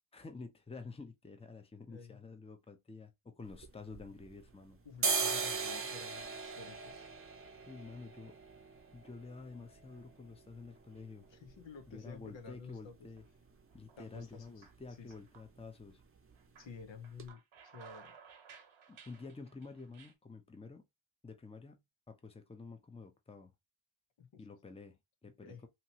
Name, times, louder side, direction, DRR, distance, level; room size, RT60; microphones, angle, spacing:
voice 1, 0.1-4.8 7.7-8.4 8.9-11.3 11.9-13.2 13.7-16.0 18.9-20.8 21.2-23.5 24.4-25.7, left 4 dB, 15° left, 0.7 m, -50 dB
voice 2, 1.9-2.2 4.8-7.1 11.3-13.1 14.0-14.7 15.0-15.3 16.6-18.2 24.2-24.4 25.2-25.7, left 5 dB, 70° left, 0.8 m, -52 dB
sound 1, 3.4-4.5 4.8-12.6 12.9-13.0 13.2-13.8 14.1-14.3 14.6-14.8 15.1-15.8 16.2-16.3 16.8-16.9 17.2-17.3, right 5 dB, 30° right, 0.7 m, -39 dB
sound 2, 4.3-5.0 5.4-6.0 6.4-7.0 7.4-7.5 8.4-9.4 9.8-10.8 11.2-11.3 12.2-12.8 13.2-13.3 13.7-16.0 16.3-20.1, right 6 dB, 75° right, 0.9 m, -59 dB
2.9 x 2.8 x 2.8 m
cardioid pair, 50°, 47 cm